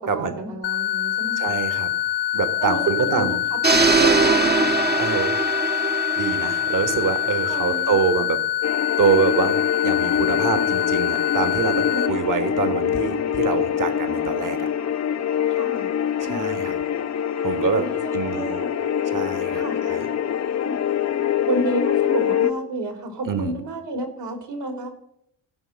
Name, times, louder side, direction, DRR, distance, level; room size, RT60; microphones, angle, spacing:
voice 1, 0.1-1.6 2.6-4.7 7.5-8.0 10.4-10.6 11.9-12.3 15.5-15.9 16.2-16.7 17.5-18.7 19.5-19.8 20.6-20.8 21.5-24.9, right 2 dB, 65° right, 6 dB, 3.1 m, -30 dB
sound 1, 0.6-12.1, left 12 dB, 80° left, 0.6 m, -25 dB
voice 2, 1.4-1.9 2.3-3.4 5.0-5.4 6.2-8.4 9.0-14.7 16.2-16.8 17.4-17.8 18.1-18.6 19.1-20.1 23.2-23.6, right 6 dB, 40° right, 9 dB, 1.7 m, -25 dB
sound 2, 3.6-7.7, right 4 dB, 20° right, 1.0 m, -22 dB
sound 3, 8.6-22.5, left 9 dB, 35° left, 0.7 m, -24 dB
16.5 x 5.6 x 6.5 m, 0.73 s
hypercardioid pair, 50°, 46 cm